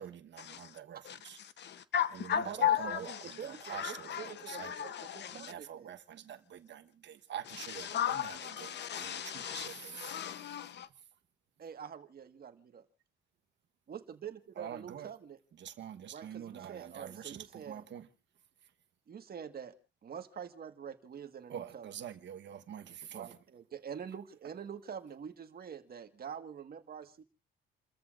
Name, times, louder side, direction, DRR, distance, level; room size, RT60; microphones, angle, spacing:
voice 1, 0.0-1.4 2.1-4.9 5.3-10.2 14.5-15.1 15.6-18.1 21.5-23.4, right 9 dB, 65° right, 1.2 m, -46 dB
voice 2, 1.6-3.2 3.7-5.5 7.9-10.9, left 10 dB, 60° left, 0.9 m, -35 dB
voice 3, 2.4-5.9 11.6-12.8 13.9-15.4 16.1-17.8 19.1-19.7 20.0-21.9 23.1-27.2, right 7 dB, 50° right, 1.7 m, -45 dB
29.5 x 14.0 x 2.6 m
cardioid pair, 90°, 20 cm